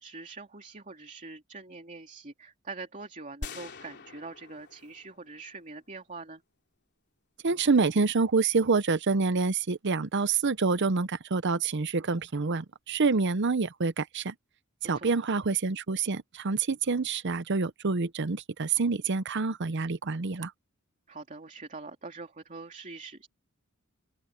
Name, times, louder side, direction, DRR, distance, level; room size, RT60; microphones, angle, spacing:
voice 1, 0.0-6.4 14.9-15.1 21.1-23.3, right 3 dB, 35° right, 2.9 m, -44 dB
sound 1, 3.4-5.7, left 3 dB, 55° left, 3.3 m, -44 dB
voice 2, 7.4-14.3 14.8-20.5, right 4 dB, 60° right, 0.8 m, -27 dB
open air
head